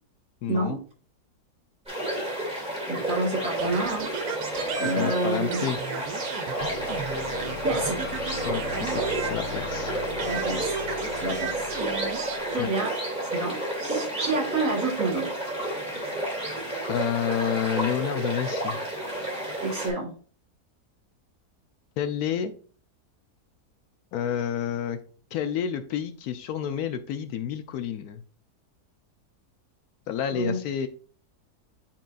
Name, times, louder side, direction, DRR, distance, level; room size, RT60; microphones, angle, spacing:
voice 1, 0.4-0.8 5.0-5.8 8.4-9.9 12.6-12.7 16.9-18.8 22.0-22.5 24.1-25.0 25.3-28.2 30.1-30.9, left 9 dB, 75° left, 10 dB, 1.1 m, -29 dB
sound 1, 1.9-19.9, right 1 dB, 5° right, 2.4 m, -31 dB
voice 2, 2.9-4.1 4.8-5.7 7.6-8.0 10.3-10.8 11.2-11.7 12.1-12.9 13.3-15.3 19.6-20.1 30.3-30.6, right 2 dB, 55° right, 1 dB, 2.0 m, -28 dB
sound 2, 3.6-9.8 10.2-12.4, right 7 dB, 70° right, 1.2 m, -35 dB
sound 3, 6.6-12.6, left 5 dB, 90° left, 1.4 m, -39 dB
10.0 x 3.8 x 2.4 m, 0.42 s
omnidirectional pair, 1.7 m